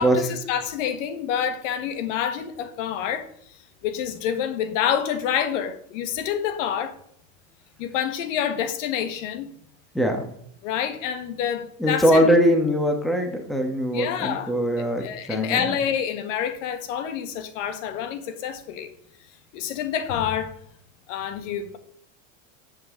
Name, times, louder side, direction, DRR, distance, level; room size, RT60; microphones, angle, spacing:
voice 1, 0.0-3.3 3.8-7.0 7.8-9.5 10.6-12.3 13.9-18.9 19.5-20.5 21.1-21.8, left 9 dB, 70° left, 1.5 m, -27 dB
voice 2, 11.8-15.7, equal, ahead, 1.3 m, -21 dB
12.5 x 7.4 x 3.8 m
supercardioid pair, 140°, 40 cm